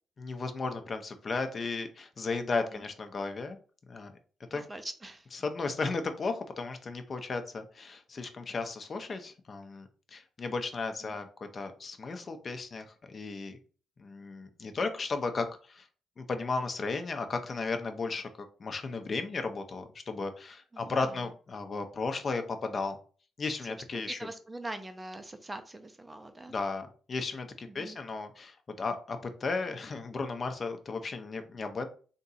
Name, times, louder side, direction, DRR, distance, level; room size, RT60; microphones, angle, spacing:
voice 1, 0.2-3.6 3.9-4.1 4.5-4.6 5.3-11.3 11.5-13.6 14.0-15.9 16.2-18.3 18.6-23.0 23.4-24.2 26.5-31.9, left 4 dB, 40° left, 7 dB, 0.7 m, -35 dB
voice 2, 4.5-5.3 11.0-11.2 20.7-21.2 23.6-23.7 24.2-26.5 27.7-28.0, right 2 dB, 15° right, 8 dB, 0.6 m, -43 dB
3.5 x 2.7 x 4.1 m, 0.39 s
cardioid pair, 90°, 0 cm